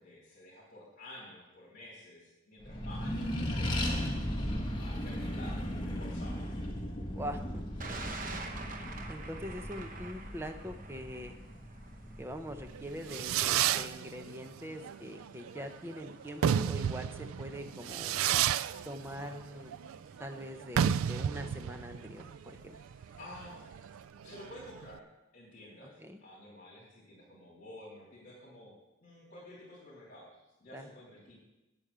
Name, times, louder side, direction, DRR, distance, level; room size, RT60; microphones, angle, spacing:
voice 1, 0.0-4.0 4.8-6.4 8.5-8.8 23.2-23.6 24.2-25.0 25.3-28.7 29.0-30.3 30.6-31.4, left 1 dB, 40° left, -7 dB, 3.2 m, -51 dB
Accelerating revving vroom, 2.6-13.5, equal, 20° left, 1.4 m, -37 dB
voice 2, 7.1-7.6 9.1-11.3 12.2-18.2 18.9-19.7 20.2-22.7 26.0-26.2 30.7-30.9, equal, 10° right, 6 dB, 0.8 m, -43 dB
Thunder, 7.8-24.1, right 3 dB, 40° right, 1.0 m, -51 dB
Fireworks, 12.7-25.0, right 9 dB, 85° right, 0.3 m, -32 dB
9.0 x 8.8 x 6.9 m, 0.99 s
head